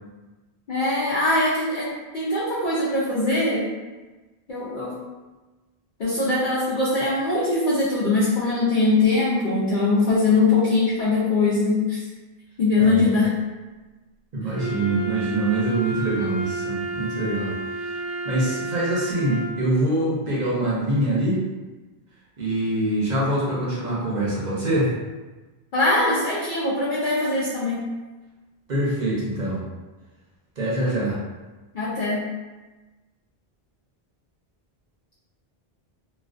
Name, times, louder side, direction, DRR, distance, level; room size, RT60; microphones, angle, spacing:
voice 1, 0.7-3.7 4.5-4.9 6.0-12.0 12.6-13.3 25.7-27.9 31.7-32.3, left 3 dB, 60° left, -8 dB, 0.6 m, -22 dB
voice 2, 14.3-17.9 18.2-21.4 22.4-24.9 28.7-29.6 30.6-31.2, right 1 dB, 50° right, -6 dB, 0.7 m, -24 dB
Wind instrument woodwind instrument, 14.5-19.7, right 3 dB, 30° right, 0.4 m, -30 dB
2.4 x 2.3 x 2.4 m, 1.2 s
omnidirectional pair, 1.0 m